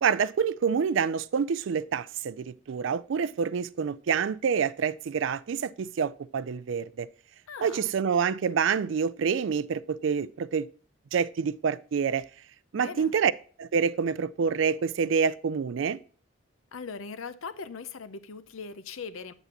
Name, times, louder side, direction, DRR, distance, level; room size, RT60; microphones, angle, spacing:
voice 1, 0.0-7.1 7.6-10.7 11.1-12.2 12.7-13.3 13.6-16.0, right 6 dB, 65° right, 0.4 m, -27 dB
voice 2, 7.5-7.9 12.7-13.1 16.7-19.3, left 5 dB, 80° left, 0.6 m, -40 dB
8.0 x 7.9 x 2.9 m
head